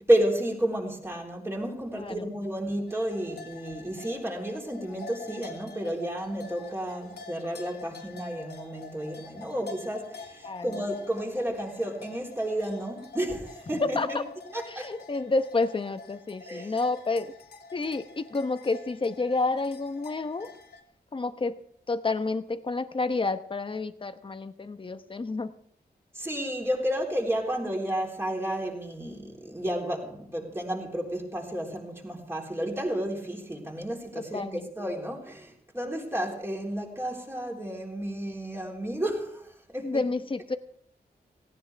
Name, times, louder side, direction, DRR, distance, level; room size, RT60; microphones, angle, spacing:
voice 1, 0.1-14.2 14.5-14.9 16.4-16.8 26.1-40.0, right 1 dB, 15° right, 0 dB, 3.8 m, -31 dB
voice 2, 2.0-2.3 10.4-10.9 13.8-14.2 14.7-17.3 17.7-20.5 21.1-21.6 21.9-25.5 34.1-34.7 39.8-40.6, left 3 dB, 30° left, 9 dB, 1.0 m, -30 dB
sound 1, 2.9-20.8, left 3 dB, 90° left, 2.6 m, -46 dB
18.0 x 17.5 x 3.5 m, 0.64 s
wide cardioid pair, 150°, 17 cm